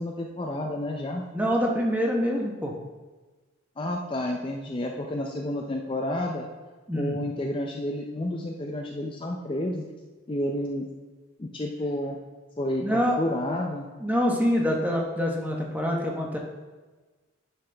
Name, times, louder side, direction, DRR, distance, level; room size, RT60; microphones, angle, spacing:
voice 1, 0.0-1.2 3.8-6.5 6.9-9.9 10.3-10.9 11.4-12.2 12.6-13.9, left 1 dB, 25° left, 1 dB, 0.4 m, -30 dB
voice 2, 1.3-2.7 6.9-7.2 12.8-13.2 14.0-16.4, equal, 10° right, 0 dB, 0.9 m, -25 dB
9.8 x 5.7 x 3.3 m, 1.3 s
head